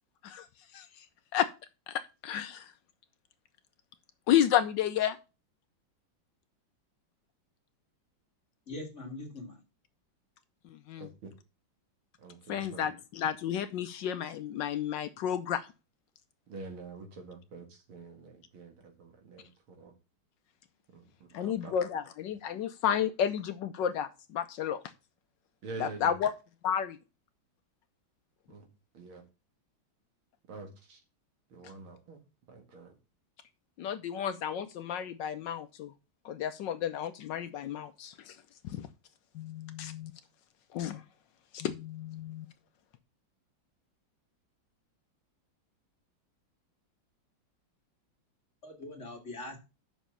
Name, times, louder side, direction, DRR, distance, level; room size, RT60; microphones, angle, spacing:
voice 1, 1.9-2.6 4.3-5.2 10.9-11.1 12.5-15.6 21.3-24.8 25.8-26.3 26.6-27.0 33.8-35.9 36.2-38.3 38.7-38.9 39.3-40.1 40.7-41.0 41.5-42.5, left 9 dB, 70° left, 10 dB, 1.2 m, -31 dB
voice 2, 8.7-9.6 48.6-49.6, left 2 dB, 35° left, 2 dB, 2.2 m, -42 dB
voice 3, 11.0-11.3 12.2-12.9 16.5-19.9 20.9-21.7 25.6-26.1 28.5-28.7 28.9-29.2 30.5-31.0 31.5-32.2 32.5-32.9, right 3 dB, 80° right, 4 dB, 2.8 m, -46 dB
7.3 x 6.1 x 5.6 m, 0.29 s
omnidirectional pair, 2.2 m